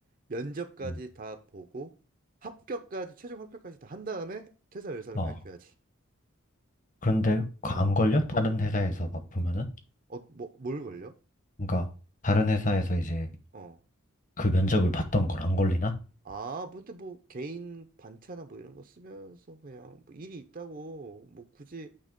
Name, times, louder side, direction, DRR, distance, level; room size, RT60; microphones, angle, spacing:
voice 1, 0.3-1.9 2.4-5.7 7.7-8.0 10.1-11.1 13.5-13.8 16.2-21.9, right 3 dB, 40° right, 0.6 m, -40 dB
voice 2, 7.0-9.7 11.6-11.9 12.2-13.3 14.4-15.9, left 1 dB, 35° left, 1.0 m, -26 dB
8.8 x 2.9 x 5.2 m
head